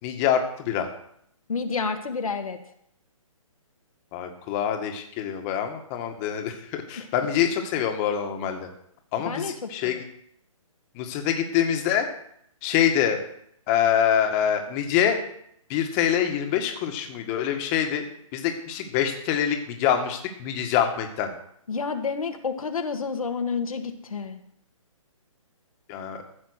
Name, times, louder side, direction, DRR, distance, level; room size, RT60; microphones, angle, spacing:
voice 1, 0.0-0.9 4.1-8.7 9.1-10.0 10.9-12.1 12.6-13.2 13.7-15.2 15.7-18.0 18.3-21.3 25.9-26.2, left 9 dB, 25° left, 5 dB, 1.7 m, -25 dB
voice 2, 1.5-2.6 7.0-7.1 9.2-10.0 21.7-24.4, left 5 dB, 80° left, 5 dB, 1.6 m, -29 dB
15.0 x 6.0 x 6.4 m, 0.71 s
hypercardioid pair, 145°, 18 cm